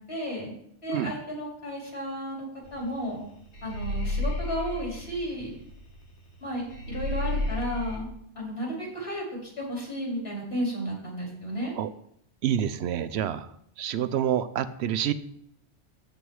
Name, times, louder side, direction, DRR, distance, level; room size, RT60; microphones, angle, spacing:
voice 1, 0.1-0.5 0.8-2.5 2.7-3.2 3.6-5.5 6.4-8.1 8.4-11.7, equal, 65° left, -3 dB, 4.0 m, -33 dB
sound 1, 2.7-2.9 3.1-6.0 6.3-6.4 6.7-8.0, left 2 dB, 90° left, 1.8 m, -31 dB
voice 2, 12.4-13.5 13.8-15.1, right 10 dB, 75° right, 13 dB, 0.8 m, -27 dB
8.3 x 7.0 x 4.7 m, 0.71 s
omnidirectional pair, 1.1 m